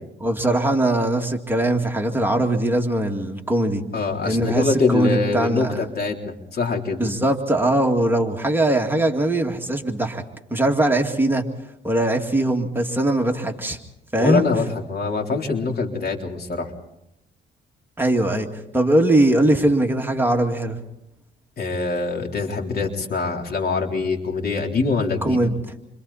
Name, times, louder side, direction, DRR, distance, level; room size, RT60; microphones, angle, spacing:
voice 1, 0.2-3.8 4.2-5.8 7.0-10.2 10.5-11.5 11.8-13.8 14.1-14.4 18.0-18.5 18.7-20.8 25.2-25.5, right 1 dB, 10° right, 2 dB, 2.3 m, -21 dB
voice 2, 3.9-7.0 14.2-16.7 21.6-25.4, left 4 dB, 50° left, 1 dB, 3.8 m, -24 dB
28.5 x 25.5 x 4.2 m, 0.83 s
cardioid pair, 90°, 20 cm